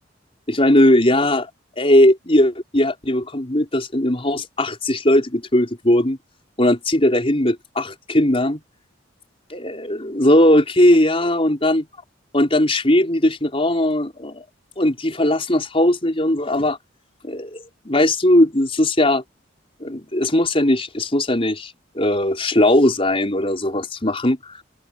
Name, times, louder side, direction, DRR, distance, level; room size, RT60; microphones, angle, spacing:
voice 1, 0.5-1.5 1.8-6.2 6.6-8.6 9.5-11.8 12.3-14.4 14.8-16.8 17.2-19.2 19.8-24.6, left 1 dB, 30° left, 4.8 m, -18 dB
open air
head